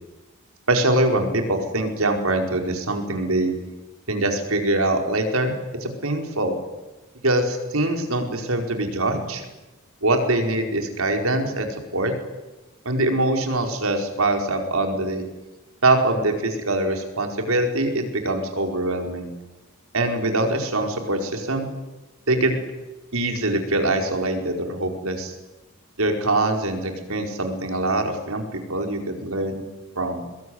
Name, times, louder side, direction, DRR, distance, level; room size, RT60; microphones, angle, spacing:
voice 1, 0.7-3.6 4.1-5.5 5.8-6.6 7.2-9.4 10.0-12.1 12.8-15.2 15.8-19.3 19.9-21.7 22.3-22.6 23.1-25.3 26.0-29.6 29.9-30.2, right 2 dB, 80° right, 4 dB, 4.9 m, -23 dB
23.5 x 22.0 x 9.6 m, 1.1 s
head